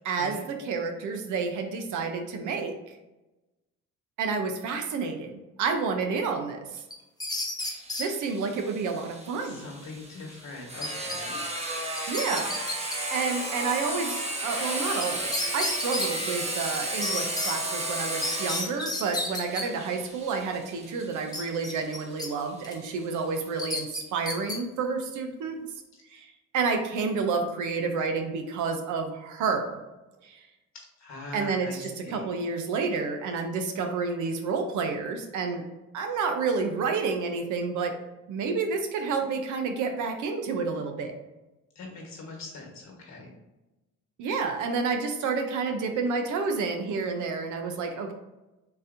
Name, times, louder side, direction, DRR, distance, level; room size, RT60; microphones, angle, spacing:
voice 1, 0.0-2.8 4.2-6.8 8.0-9.7 12.1-12.6 13.1-25.6 26.1-29.8 30.2-30.4 31.3-35.6 35.9-38.0 38.3-41.1 44.2-48.1, right 4 dB, 80° right, 5 dB, 0.6 m, -30 dB
sound 1, 6.9-8.1 10.8-11.2 11.5-11.6 12.0-13.0 15.0-15.1 15.3-16.1 17.0-17.5 18.2-19.6 21.3-22.3 22.6-22.9 23.6-24.6, left 2 dB, 15° left, 0.6 m, -32 dB
Sawing, 7.6-23.0, right 1 dB, 20° right, 0.8 m, -34 dB
voice 2, 9.4-11.4 31.0-32.2 41.7-43.3, left 3 dB, 65° left, -1 dB, 1.3 m, -42 dB
3.9 x 2.7 x 2.6 m, 1.0 s
cardioid pair, 90°, 30 cm